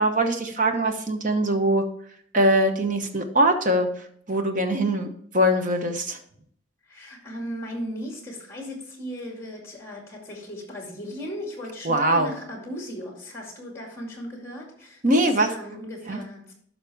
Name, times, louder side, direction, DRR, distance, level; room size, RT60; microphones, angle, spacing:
voice 1, 0.0-1.8 2.3-3.9 4.3-5.1 5.3-6.2 11.8-12.3 15.0-15.5 16.1-16.2, right 1 dB, 40° right, 6 dB, 0.9 m, -22 dB
voice 2, 6.9-16.5, equal, 15° left, 1 dB, 2.1 m, -37 dB
11.5 x 5.6 x 3.5 m, 0.65 s
head